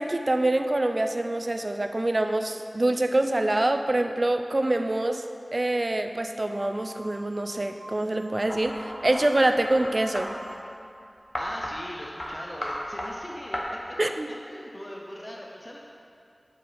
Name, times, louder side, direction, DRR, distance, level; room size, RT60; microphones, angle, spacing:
voice 1, 0.0-5.2 5.5-10.3 14.0-14.3, right 1 dB, 45° right, 6 dB, 0.4 m, -25 dB
sound 1, 6.5-10.9, equal, 5° right, 0.8 m, -47 dB
sound 2, 8.5-10.3 11.3-11.8 12.2-12.3 12.6-13.1 13.5-13.6, left 1 dB, 40° left, 1.0 m, -34 dB
voice 2, 11.3-13.8 14.3-15.8, equal, 25° left, -2 dB, 0.6 m, -40 dB
5.7 x 4.9 x 5.4 m, 2.4 s
wide cardioid pair, 45°, 0 cm